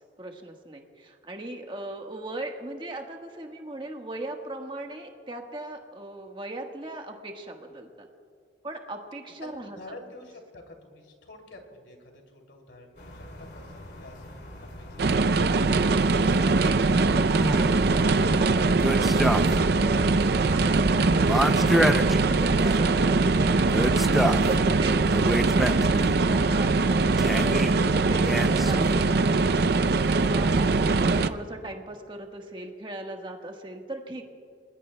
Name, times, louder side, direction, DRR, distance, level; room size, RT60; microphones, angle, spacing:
voice 1, 0.2-8.1 8.6-9.8 16.4-19.3 19.8-27.1 27.4-34.2, right 1 dB, 25° right, 2 dB, 1.4 m, -38 dB
voice 2, 9.4-14.5 14.8-15.4 15.7-15.8, left 1 dB, 80° left, 2 dB, 2.8 m, -48 dB
sound 1, 13.0-31.3, left 1 dB, 60° left, 2.6 m, -44 dB
sound 2, 15.0-31.3, right 3 dB, 60° right, 0.5 m, -22 dB
sound 3, 17.3-17.9 18.8-19.8 20.0-20.1 21.2-22.8 23.6-24.5 25.1-26.2 27.2-27.8 28.3-29.0, equal, ahead, 0.4 m, -28 dB
29.5 x 20.0 x 2.2 m, 2.4 s
head